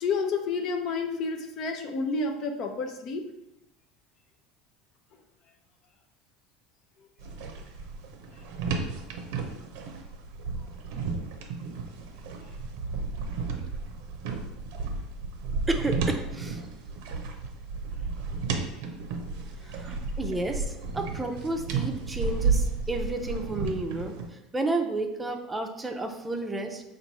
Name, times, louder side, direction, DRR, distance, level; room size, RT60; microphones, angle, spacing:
voice 1, 0.0-3.3 19.6-19.7, left 4 dB, 55° left, 5 dB, 0.6 m, -30 dB
sound 1, 7.2-24.3, right 4 dB, 75° right, 0.6 m, -33 dB
voice 2, 15.7-16.7 19.7-24.1 24.5-26.8, right 2 dB, 15° right, 4 dB, 0.5 m, -31 dB
4.4 x 2.5 x 4.1 m, 0.89 s
supercardioid pair, 95°, 0 cm